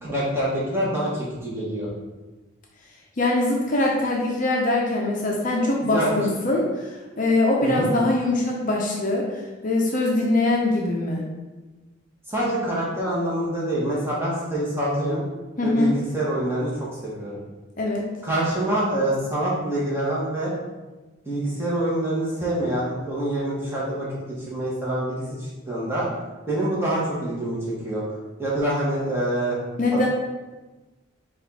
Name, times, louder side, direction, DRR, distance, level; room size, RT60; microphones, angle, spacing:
voice 1, 0.0-1.9 5.8-6.1 7.6-7.9 12.3-15.2 15.6-17.4 18.2-20.5 21.3-24.1 24.5-26.1 26.5-27.6 27.8-28.0 28.4-29.6, right 1 dB, 10° right, -6 dB, 1.1 m, -26 dB
voice 2, 3.2-11.2 15.6-15.9 17.8-18.0 29.8-30.1, left 2 dB, 40° left, -2 dB, 0.6 m, -22 dB
5.0 x 2.4 x 4.0 m, 1.2 s
head